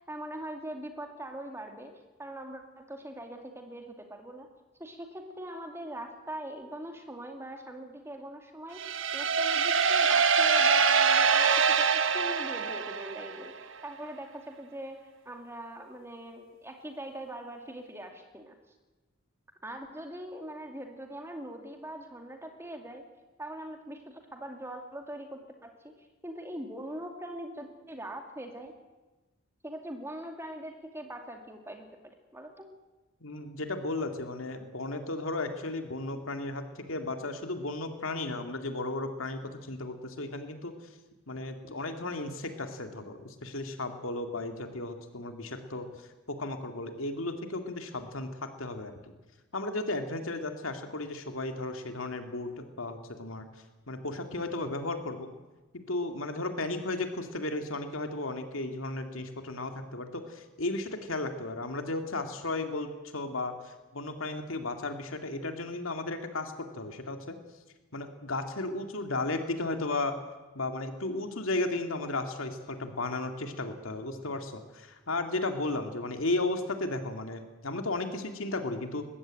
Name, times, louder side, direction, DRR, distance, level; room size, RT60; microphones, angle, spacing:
voice 1, 0.1-1.9 2.2-4.5 4.8-18.6 19.6-23.0 23.4-25.9 26.2-28.8 29.6-32.7, right 1 dB, 10° right, 4 dB, 2.4 m, -42 dB
sound 1, 8.8-13.5, right 6 dB, 65° right, 1.3 m, -24 dB
voice 2, 33.2-40.7 41.3-45.9 46.3-48.9 49.5-53.5 53.9-55.3 55.7-67.4 67.9-70.1 70.5-79.1, left 2 dB, 80° left, 6 dB, 2.4 m, -34 dB
21.0 x 15.5 x 9.1 m, 1.2 s
head